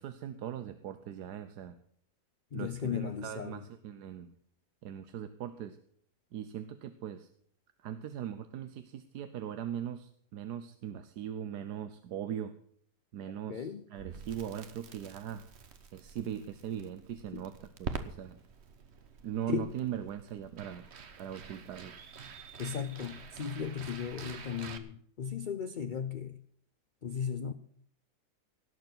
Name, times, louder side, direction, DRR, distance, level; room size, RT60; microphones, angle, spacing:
voice 1, 0.0-1.8 2.5-4.3 4.8-5.8 6.3-7.3 7.8-12.6 13.1-15.4 15.9-18.4 19.2-20.9 21.2-22.0, right 9 dB, 75° right, 10 dB, 1.4 m, -40 dB
voice 2, 2.5-3.6 13.5-13.8 17.3-17.4 19.5-19.7 22.6-26.4 27.0-27.5, left 7 dB, 65° left, 10 dB, 0.4 m, -36 dB
Crackle, 14.0-24.8, right 5 dB, 45° right, 1.2 m, -46 dB
17.5 x 6.9 x 7.8 m, 0.63 s
omnidirectional pair, 1.8 m